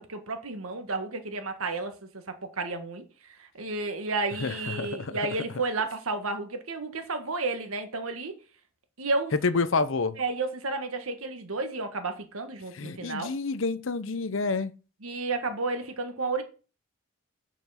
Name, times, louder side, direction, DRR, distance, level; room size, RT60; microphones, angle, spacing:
voice 1, 0.0-2.2 2.6-8.3 9.0-9.3 10.2-13.3 15.0-16.4, right 3 dB, 85° right, 1.6 m, -32 dB
voice 2, 4.4-5.2 9.4-10.1 12.7-14.7, left 4 dB, 65° left, 0.7 m, -28 dB
7.0 x 6.0 x 5.8 m
head